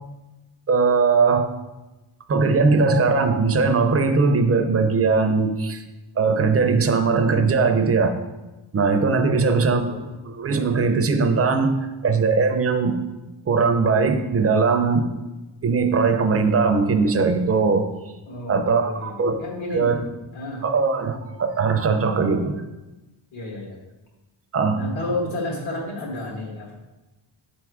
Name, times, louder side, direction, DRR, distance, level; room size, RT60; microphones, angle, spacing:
voice 1, 0.7-1.5 2.3-5.8 6.2-8.2 8.7-11.7 12.0-13.0 13.5-15.1 15.6-17.9 18.5-19.4 19.7-19.9 20.6-22.5 24.5-24.8, right 4 dB, 30° right, 7 dB, 0.5 m, -20 dB
voice 2, 9.2-10.1 18.3-20.0 20.3-20.6 23.3-23.8 24.7-26.7, left 2 dB, 65° left, -3 dB, 1.7 m, -31 dB
6.6 x 3.6 x 4.7 m, 1.1 s
wide cardioid pair, 140°, 50 cm